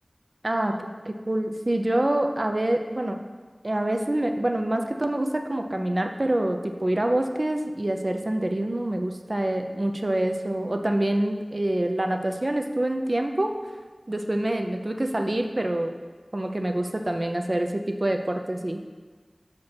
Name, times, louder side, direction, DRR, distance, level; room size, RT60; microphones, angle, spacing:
voice 1, 0.4-3.2 3.6-13.6 14.1-16.0 16.3-18.8, right 1 dB, 50° right, 5 dB, 0.5 m, -26 dB
6.4 x 4.4 x 5.8 m, 1.4 s
wide cardioid pair, 40°, 0 cm